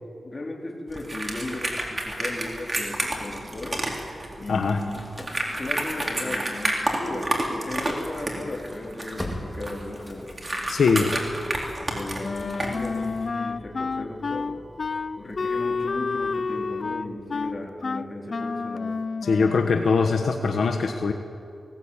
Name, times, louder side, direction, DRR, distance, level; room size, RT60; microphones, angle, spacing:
voice 1, 0.2-3.8 4.4-5.0 5.5-10.3 11.0-11.2 11.7-14.5 15.2-19.0, left 2 dB, 40° left, -1 dB, 4.2 m, -36 dB
sound 1, 0.9-13.2, right 1 dB, 25° right, 3.9 m, -30 dB
Engine starting / Slam, 2.9-4.3 4.6-17.6, left 1 dB, 10° left, 3.7 m, -44 dB
voice 2, 4.5-4.8 10.7-11.1 19.2-21.1, left 4 dB, 85° left, 4 dB, 1.2 m, -22 dB
Wind instrument woodwind instrument, 12.2-19.8, left 4 dB, 55° left, 0.5 m, -29 dB
19.5 x 18.0 x 8.9 m, 2.4 s
wide cardioid pair, 90°, 0 cm